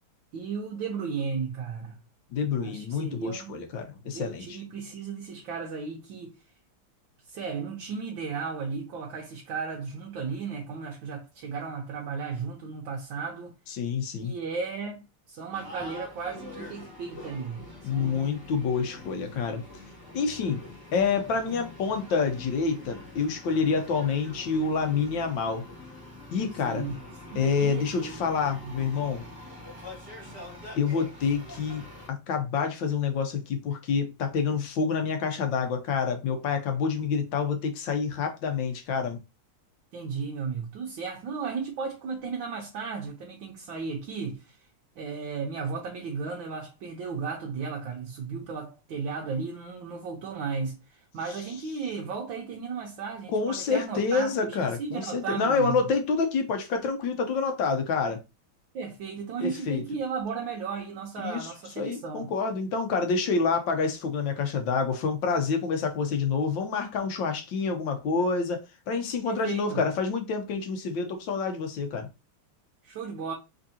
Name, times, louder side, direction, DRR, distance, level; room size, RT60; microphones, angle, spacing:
voice 1, 0.3-1.9 2.6-3.6 4.1-6.4 7.2-13.6 14.2-18.3 26.6-27.0 27.2-28.2 28.6-28.7 39.9-44.7 45.0-55.8 58.7-62.3 69.2-69.8 72.8-73.3, right 5 dB, 70° right, 1.5 m, -35 dB
voice 2, 2.3-4.6 13.8-14.3 17.8-19.6 20.1-20.6 20.9-25.6 26.3-26.9 27.3-29.2 30.8-39.2 53.3-58.2 59.4-59.8 61.2-61.5 61.8-68.6 68.9-72.1, left 5 dB, 65° left, 1.4 m, -27 dB
sound 1, 15.5-32.1, left 1 dB, 10° right, 1.6 m, -45 dB
5.3 x 3.5 x 2.8 m
omnidirectional pair, 2.3 m